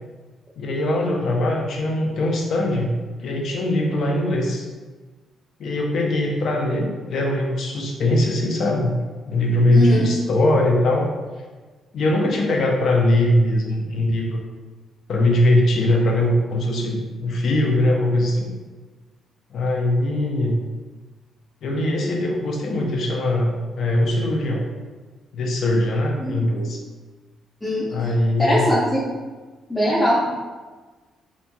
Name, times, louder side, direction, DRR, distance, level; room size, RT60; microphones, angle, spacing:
voice 1, 0.6-4.7 5.6-9.0 9.3-11.1 11.9-14.4 15.1-18.5 19.5-20.6 21.6-24.7 25.3-26.8 27.9-28.7, left 1 dB, 65° left, 0 dB, 0.5 m, -21 dB
voice 2, 9.7-10.0 26.2-26.4 27.6-27.9 28.4-29.0 29.7-30.2, left 1 dB, 15° left, -8 dB, 0.6 m, -20 dB
2.9 x 2.5 x 2.2 m, 1.3 s
cardioid pair, 90°, 0 cm